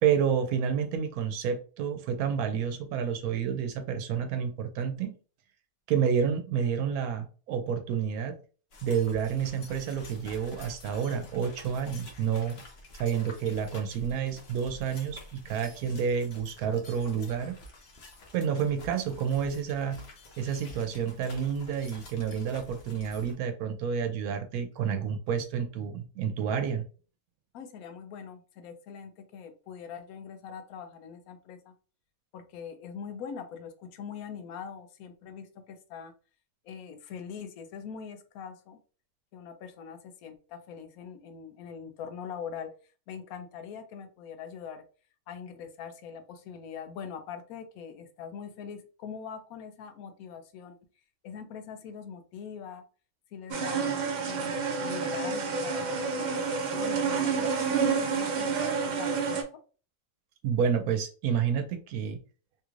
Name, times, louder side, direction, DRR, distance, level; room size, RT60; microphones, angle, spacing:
voice 1, 0.0-5.1 5.9-8.4 8.8-12.6 13.0-17.6 18.3-20.0 20.4-26.8 60.4-62.2, right 7 dB, 85° right, 1.1 m, -29 dB
sound 1, 8.7-23.3, left 1 dB, 50° left, 0.9 m, -49 dB
voice 2, 27.5-31.7 32.3-36.1 36.6-38.8 39.3-42.7 43.1-44.8 45.3-50.8 51.2-52.8 53.3-59.4, left 7 dB, 80° left, 1.0 m, -42 dB
sound 2, 53.5-59.4, right 5 dB, 65° right, 0.4 m, -29 dB
3.3 x 3.0 x 2.4 m
omnidirectional pair, 1.5 m